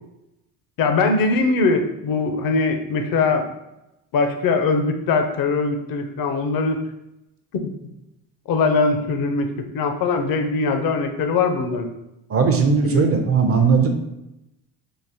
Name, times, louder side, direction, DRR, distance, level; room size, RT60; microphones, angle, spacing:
voice 1, 0.8-3.5 4.1-6.8 8.5-11.9 12.8-13.0, left 3 dB, 50° left, 6 dB, 0.6 m, -21 dB
voice 2, 12.3-13.9, right 5 dB, 35° right, 5 dB, 0.5 m, -18 dB
3.9 x 2.4 x 2.8 m, 0.90 s
supercardioid pair, 95°, 44 cm